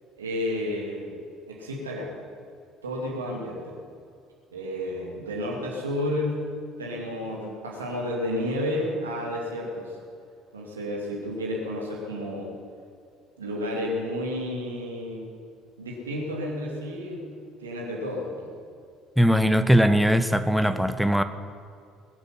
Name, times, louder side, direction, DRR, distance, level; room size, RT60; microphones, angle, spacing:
voice 1, 0.2-1.2 1.5-2.1 2.8-3.7 4.5-6.4 6.8-9.9 10.5-12.5 13.4-15.2 15.8-17.2 17.6-18.5, left 1 dB, 80° right, -2 dB, 2.6 m, -31 dB
voice 2, 19.2-21.2, equal, ahead, 11 dB, 1.0 m, -20 dB
21.0 x 8.0 x 7.5 m, 2.3 s
figure-of-eight pair, 55°, 0 cm